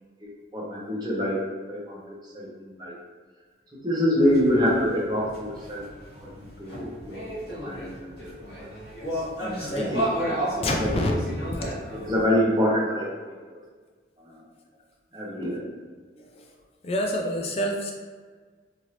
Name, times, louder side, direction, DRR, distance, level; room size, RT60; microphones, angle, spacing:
voice 1, 0.2-1.4 1.7-3.0 3.7-5.9 6.2-7.2 7.6-8.7 9.4-10.9 12.0-13.1 13.5-13.6 14.2-14.4 15.1-15.6, equal, 25° right, -5 dB, 0.7 m, -26 dB
sound 1, 4.2-12.3, equal, 55° left, 1.2 m, -33 dB
voice 2, 9.6-9.9 10.6-11.1 11.9-12.0 16.2-16.5 16.8-17.9, left 1 dB, 35° left, 1 dB, 0.3 m, -28 dB
2.8 x 2.6 x 3.1 m, 1.5 s
head